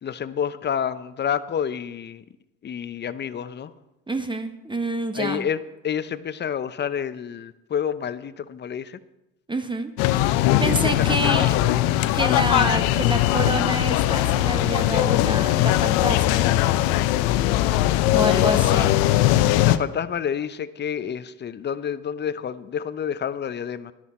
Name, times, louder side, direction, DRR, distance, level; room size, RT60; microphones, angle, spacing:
voice 1, 0.0-2.2 2.6-3.7 5.1-9.0 10.4-11.8 18.4-18.8 19.6-23.9, left 8 dB, 30° left, 14 dB, 0.6 m, -29 dB
voice 2, 4.1-5.4 9.5-9.9 10.6-11.5 12.1-16.4 18.1-18.9, right 2 dB, 15° right, 8 dB, 0.9 m, -27 dB
sound 1, 10.0-19.8, left 14 dB, 70° left, 0.7 m, -20 dB
12.0 x 11.0 x 4.3 m, 0.96 s
supercardioid pair, 90°, 37 cm